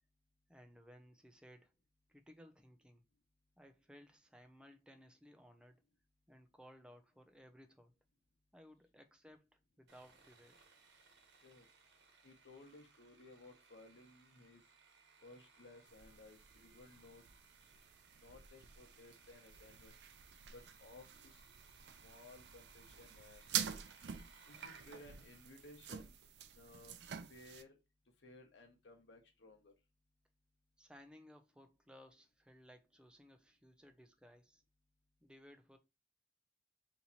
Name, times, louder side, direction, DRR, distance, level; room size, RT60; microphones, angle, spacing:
voice 1, 0.5-1.7 2.1-3.0 3.6-5.8 6.3-7.9 8.5-10.6 30.8-34.6 35.2-35.8, equal, 5° right, 0.5 m, -60 dB
Sawing, 9.9-26.3, right 4 dB, 90° right, 0.9 m, -66 dB
voice 2, 12.2-14.6 15.2-17.2 17.6-17.7 18.2-19.9 20.5-21.5 22.0-23.5 24.5-26.1 26.5-27.8 28.2-29.7, left 2 dB, 90° left, 0.9 m, -59 dB
sound 1, 15.9-27.6, right 9 dB, 70° right, 0.4 m, -47 dB
3.0 x 2.8 x 4.0 m
head